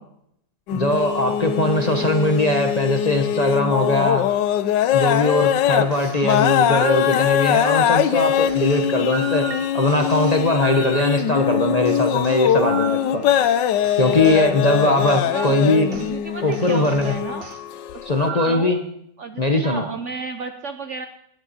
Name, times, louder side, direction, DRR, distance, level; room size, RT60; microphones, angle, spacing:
sound 1, 0.7-18.3, left 10 dB, 85° left, 1.4 m, -22 dB
voice 1, 0.7-4.3 4.9-9.5 9.7-13.2 14.0-15.9 16.4-17.1 18.1-18.8 19.4-19.8, left 1 dB, 25° left, 4 dB, 1.0 m, -20 dB
voice 2, 1.8-2.1 15.2-17.4 17.9-18.8 19.2-21.1, right 4 dB, 55° right, 7 dB, 0.9 m, -33 dB
sound 2, 5.9-7.7 8.3-11.5 11.8-14.5 15.1-15.3 15.9-16.1 16.5-17.6 18.2-18.8, right 8 dB, 70° right, 0.5 m, -36 dB
19.5 x 9.8 x 4.2 m, 0.73 s
omnidirectional pair, 1.9 m